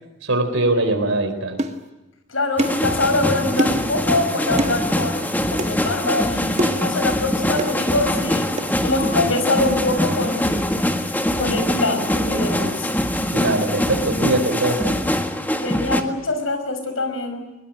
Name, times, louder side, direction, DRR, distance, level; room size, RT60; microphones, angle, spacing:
voice 1, 0.2-1.6 13.3-14.9, right 2 dB, 80° right, 6 dB, 4.3 m, -21 dB
sound 1, 1.6-1.8 2.6-2.8 3.6-3.9 4.6-4.8 5.6-5.7 6.6-6.9 7.6-7.8 8.6-8.7, right 1 dB, 35° right, 1.6 m, -24 dB
voice 2, 2.3-8.5 8.8-10.7 11.4-13.0 15.6-17.4, left 2 dB, 85° left, 7 dB, 5.7 m, -24 dB
sound 2, 2.6-16.0, left 1 dB, 10° left, 1.7 m, -23 dB
22.0 x 21.5 x 9.2 m, 1.0 s
head